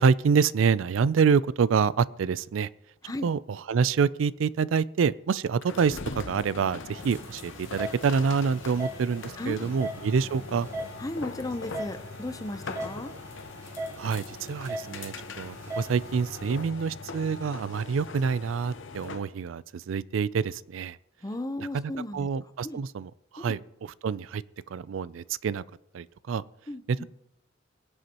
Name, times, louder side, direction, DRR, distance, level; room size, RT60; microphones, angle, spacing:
voice 1, 0.0-2.7 3.2-10.7 14.0-21.0 21.7-24.4 24.7-25.6 25.9-26.4 26.9-27.0, right 6 dB, 85° right, 19 dB, 0.4 m, -27 dB
sound 1, 5.6-19.3, left 4 dB, 70° left, 0.8 m, -41 dB
sound 2, 6.9-16.6, right 1 dB, 15° right, 2.2 m, -41 dB
voice 2, 9.4-9.7 11.0-13.1 21.2-22.3 22.6-22.8 23.4-23.6 26.7-27.0, left 1 dB, 20° left, 10 dB, 0.6 m, -35 dB
23.5 x 8.0 x 2.9 m, 0.84 s
head